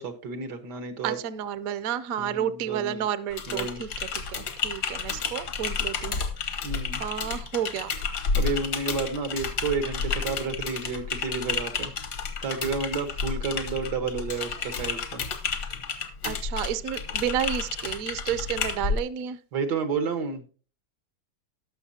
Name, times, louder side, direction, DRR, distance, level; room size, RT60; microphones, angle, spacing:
voice 1, 0.0-1.2 2.2-3.0 3.5-3.8 6.6-7.0 8.3-11.9 12.4-15.2 19.5-20.5, right 4 dB, 85° right, 8 dB, 1.9 m, -31 dB
voice 2, 1.0-6.2 7.0-7.9 16.2-19.4, right 9 dB, 65° right, 13 dB, 1.0 m, -31 dB
Typing, 3.3-19.0, left 5 dB, 80° left, 1.8 m, -31 dB
19.0 x 6.3 x 2.7 m, 0.37 s
omnidirectional pair, 1.8 m